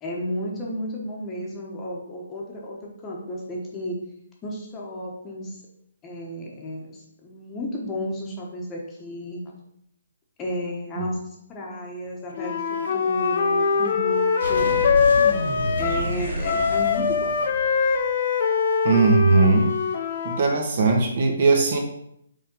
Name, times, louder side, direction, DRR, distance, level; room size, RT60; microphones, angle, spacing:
voice 1, 0.0-4.0 4.4-5.6 6.0-9.4 10.4-12.6 12.9-14.7 15.8-17.4, equal, 15° left, -2 dB, 1.1 m, -33 dB
Wind instrument woodwind instrument, 12.3-16.1 16.4-20.4, left 5 dB, 45° left, 0.7 m, -22 dB
sound 1, 14.4-18.1, equal, 85° right, 2.7 m, -30 dB
voice 2, 18.8-19.7 20.2-21.8, right 3 dB, 45° right, 2 dB, 1.2 m, -19 dB
5.4 x 3.6 x 5.3 m, 0.75 s
hypercardioid pair, 165°, 0 cm